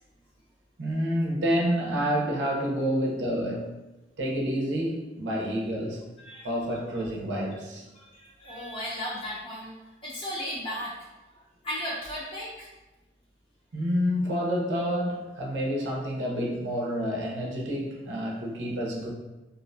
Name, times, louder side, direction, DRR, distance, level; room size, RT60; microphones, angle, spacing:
voice 1, 0.8-3.7 4.2-6.0 6.4-7.9 13.7-19.1, equal, 85° right, -2 dB, 0.6 m, -28 dB
voice 2, 6.2-6.8 7.9-9.7 10.0-11.0 11.6-12.7, equal, 30° left, -6 dB, 0.7 m, -35 dB
2.5 x 2.1 x 2.5 m, 1.1 s
head